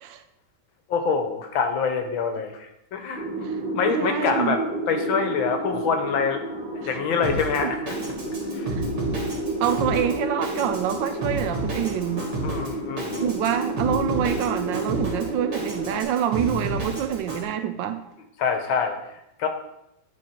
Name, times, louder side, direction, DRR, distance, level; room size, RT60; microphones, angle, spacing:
voice 1, 0.9-6.4 6.8-7.9 8.5-8.7 11.1-11.2 12.4-13.3 18.4-19.0 19.4-19.5, left 5 dB, 75° left, 6 dB, 1.7 m, -26 dB
sound 1, 3.1-16.0, right 1 dB, 30° right, 2.3 m, -31 dB
voice 2, 3.9-4.6 7.6-7.7 8.8-8.9 9.6-12.3 13.2-18.0, right 9 dB, 75° right, 9 dB, 1.2 m, -26 dB
Drum kit, 7.2-17.4, right 2 dB, 55° right, 2.4 m, -32 dB
9.6 x 4.2 x 4.5 m, 0.83 s
omnidirectional pair, 2.2 m